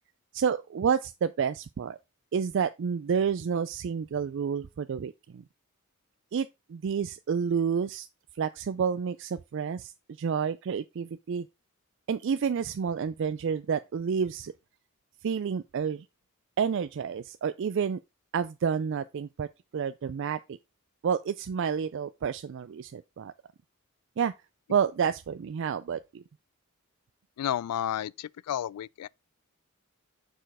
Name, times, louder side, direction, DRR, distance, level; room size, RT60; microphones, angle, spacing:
voice 1, 0.3-2.0 2.3-5.4 6.3-8.1 8.4-9.9 10.2-11.5 12.1-14.5 15.2-16.0 16.6-18.0 18.3-19.5 19.7-20.4 21.0-23.3 24.2-24.3 24.7-26.2, right 6 dB, 55° right, 0.3 m, -29 dB
voice 2, 27.4-29.1, left 10 dB, 90° left, 0.3 m, -32 dB
6.1 x 4.5 x 4.8 m
head